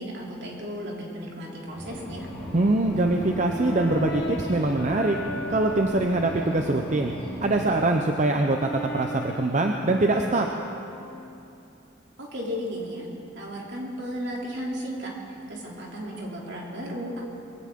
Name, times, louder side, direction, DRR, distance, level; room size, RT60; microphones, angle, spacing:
voice 1, 0.0-2.3 12.2-13.0 13.4-15.1 15.5-17.2, equal, 60° right, -3 dB, 3.1 m, -34 dB
sound 1, 1.7-7.7, equal, 5° left, 4.4 m, -38 dB
voice 2, 2.5-5.2 5.5-7.1 7.4-10.5, right 2 dB, 40° right, 3 dB, 0.7 m, -23 dB
Brass instrument, 2.8-6.8 7.3-11.4, left 1 dB, 55° left, 1.5 m, -37 dB
22.0 x 16.0 x 3.7 m, 2.8 s
head